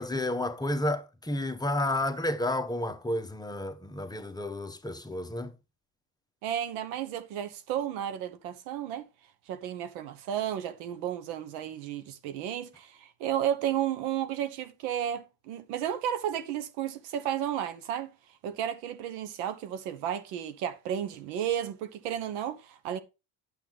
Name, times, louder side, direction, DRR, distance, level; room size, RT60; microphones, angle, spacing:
voice 1, 0.0-5.5, left 1 dB, 10° left, 1.1 m, -31 dB
voice 2, 6.4-9.1 9.5-18.1 18.4-23.0, right 10 dB, 90° right, 1.3 m, -33 dB
8.9 x 7.5 x 3.5 m
cardioid pair, 110°, 38 cm